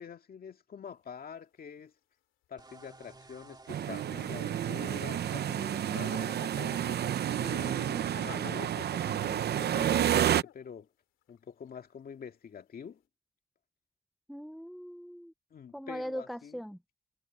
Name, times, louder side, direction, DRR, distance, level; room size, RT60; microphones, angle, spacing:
voice 1, 0.0-1.9 2.5-6.8 7.4-10.9 11.3-13.0 15.5-16.6, left 7 dB, 50° left, 2.2 m, -46 dB
sound 1, 1.0-1.3 4.4-4.5 5.0-10.7 11.3-11.4 11.7-11.8, left 14 dB, 85° left, 2.7 m, -51 dB
sound 2, 2.6-8.1, right 3 dB, 20° right, 2.3 m, -53 dB
sound 3, 3.7-10.4, right 10 dB, 55° right, 0.7 m, -30 dB
voice 2, 7.7-8.1 14.3-15.3 15.7-16.8, equal, ahead, 0.7 m, -41 dB
cardioid pair, 90°, 20 cm